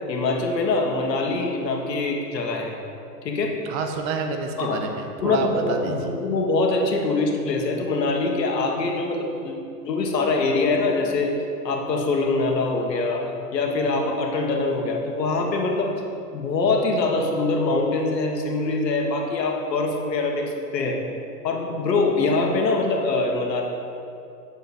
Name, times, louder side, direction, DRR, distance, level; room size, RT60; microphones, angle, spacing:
voice 1, 0.1-2.7 3.2-3.6 4.6-4.9 5.2-9.6 9.9-11.4 11.6-13.2 13.5-15.9 16.3-21.0 21.4-23.6, left 3 dB, 80° left, 1 dB, 1.7 m, -23 dB
voice 2, 3.6-6.1, right 4 dB, 45° right, 5 dB, 1.2 m, -29 dB
9.2 x 6.8 x 4.3 m, 2.6 s
hypercardioid pair, 110°, 49 cm